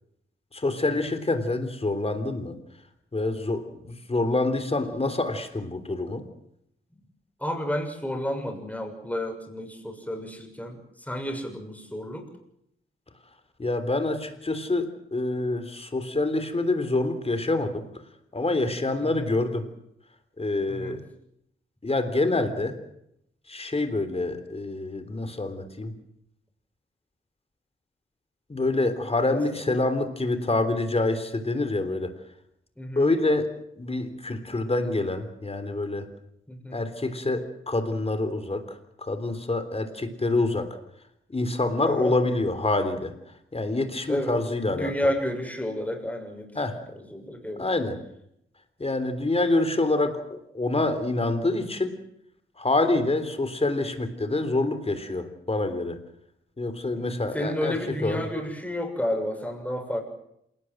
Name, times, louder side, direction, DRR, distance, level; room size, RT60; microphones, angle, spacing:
voice 1, 0.5-2.6 3.1-6.2 13.6-17.9 18.3-19.7 20.4-21.0 21.8-22.8 23.5-25.9 28.5-32.1 33.0-33.5 33.8-36.1 36.7-40.8 41.3-43.1 43.5-44.9 46.6-46.8 47.6-48.0 48.8-52.0 52.6-56.0 56.6-58.3, left 2 dB, 30° left, 10 dB, 3.5 m, -26 dB
voice 2, 7.4-12.3 19.0-19.2 20.7-21.0 29.3-29.6 32.8-33.1 36.5-36.8 41.8-42.2 44.1-44.4 44.7-46.5 46.9-47.7 56.9-60.0, left 1 dB, 5° left, 3 dB, 6.7 m, -31 dB
27.5 x 18.5 x 7.8 m, 0.77 s
wide cardioid pair, 110°, 21 cm